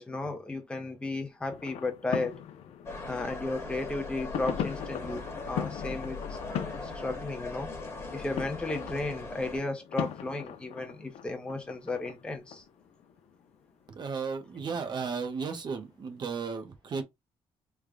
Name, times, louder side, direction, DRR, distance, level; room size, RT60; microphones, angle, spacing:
voice 1, 0.0-2.3 3.0-6.4 6.8-7.7 8.1-12.6, left 2 dB, 10° left, 0.6 m, -34 dB
sound 1, 1.5-14.0 14.5-15.3 16.1-16.2, left 9 dB, 80° left, 0.5 m, -40 dB
sound 2, 2.9-9.6, left 3 dB, 25° left, 1.3 m, -40 dB
voice 2, 13.9-17.0, right 5 dB, 45° right, 0.8 m, -34 dB
3.3 x 2.2 x 3.7 m
cardioid pair, 140°, 11 cm